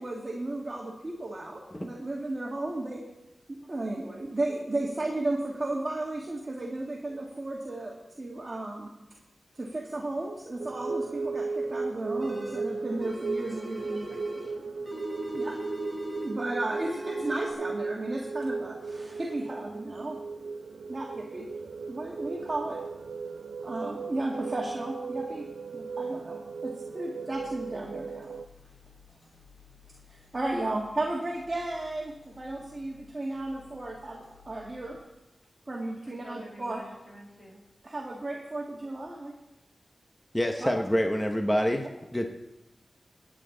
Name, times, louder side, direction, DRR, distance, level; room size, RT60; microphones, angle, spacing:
voice 1, 0.0-3.0 3.5-8.9 9.5-14.1 15.3-15.6 16.2-20.2 20.9-22.8 23.6-25.5 25.7-28.3 30.1-35.0 35.7-36.8 37.8-39.4 40.6-40.7 41.8-41.9 42.2-42.3, right 2 dB, 35° right, -3 dB, 1.8 m, -34 dB
sound 1, 10.6-28.5, right 4 dB, 90° right, 0.5 m, -36 dB
sound 2, 12.2-12.7 13.0-14.5 14.8-16.4 16.7-17.5, right 1 dB, 5° right, 3.8 m, -39 dB
voice 2, 13.6-14.9 36.0-37.6, equal, 30° left, -3 dB, 4.9 m, -50 dB
sound 3, 27.3-35.0, left 7 dB, 65° left, 3.8 m, -57 dB
voice 3, 40.3-41.9 42.1-42.3, equal, 10° left, 4 dB, 0.9 m, -26 dB
22.5 x 8.7 x 3.9 m, 0.94 s
wide cardioid pair, 120°, 0 cm